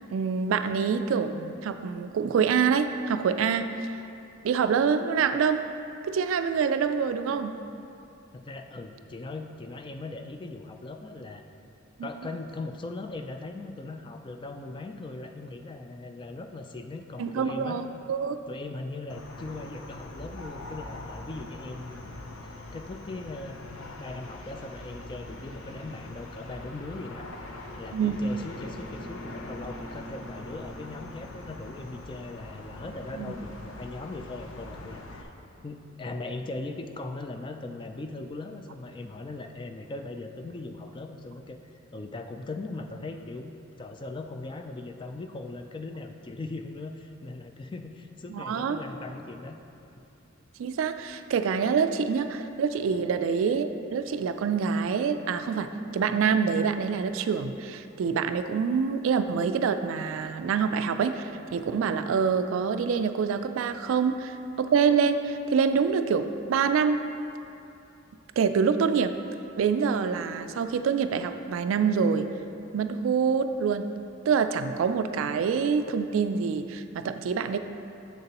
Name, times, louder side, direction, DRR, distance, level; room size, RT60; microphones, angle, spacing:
voice 1, 0.1-3.8 4.4-5.7 6.1-7.6 12.0-12.1 17.2-18.4 27.9-28.2 33.2-33.3 48.3-48.8 50.6-67.1 68.4-69.1 69.6-72.3 72.7-73.9 74.3-77.6, right 6 dB, 70° right, 9 dB, 0.3 m, -26 dB
voice 2, 8.3-11.4 12.0-17.8 18.5-27.3 27.8-35.3 35.6-41.6 41.9-49.6, left 2 dB, 25° left, 6 dB, 0.3 m, -39 dB
sound 1, 19.1-35.2, left 1 dB, 80° left, 0.6 m, -42 dB
7.5 x 6.6 x 2.9 m, 2.7 s
head